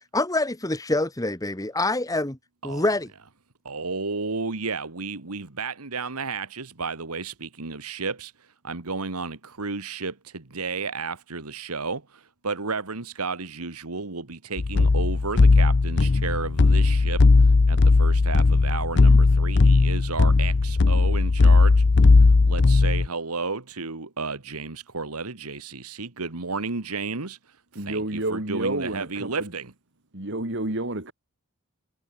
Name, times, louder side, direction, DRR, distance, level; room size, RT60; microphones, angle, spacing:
voice 1, 0.1-2.4 2.6-3.1, left 2 dB, 15° left, 1.4 m, -25 dB
voice 2, 3.7-21.8 22.1-29.7, right 4 dB, 85° right, 1.8 m, -33 dB
sound 1, 14.6-23.1, left 3 dB, 50° left, 0.6 m, -17 dB
voice 3, 27.7-29.5 30.1-31.1, right 2 dB, 55° right, 3.2 m, -29 dB
head